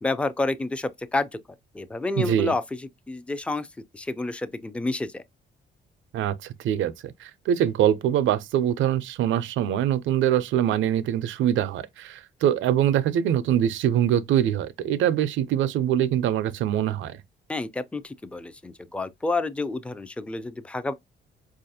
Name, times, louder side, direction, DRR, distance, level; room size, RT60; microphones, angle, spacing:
voice 1, 0.0-1.4 1.7-2.6 3.1-3.7 3.9-5.2 17.5-20.9, left 2 dB, 5° left, 0.4 m, -29 dB
voice 2, 2.2-2.5 6.1-17.2, right 10 dB, 75° right, 0.5 m, -23 dB
4.6 x 2.4 x 2.6 m
cardioid pair, 90°, 20 cm